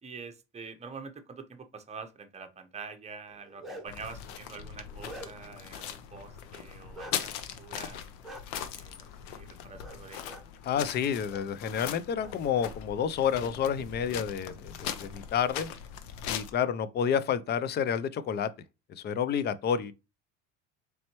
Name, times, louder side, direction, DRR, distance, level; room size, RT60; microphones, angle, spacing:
voice 1, 0.0-7.3 7.6-8.0 8.7-10.4, right 5 dB, 20° right, 0.8 m, -46 dB
Bark, 3.3-4.1 4.6-5.6 6.9-7.2 8.2-8.4 9.8-10.0 10.2-10.4 11.3-11.4 11.8-12.7, equal, ahead, 1.1 m, -45 dB
sound 1, 3.9-16.5, left 9 dB, 75° left, 0.7 m, -40 dB
voice 2, 10.6-15.7 16.3-18.5 19.0-19.9, left 8 dB, 30° left, 0.4 m, -29 dB
4.1 x 3.3 x 2.9 m
supercardioid pair, 105°, 36 cm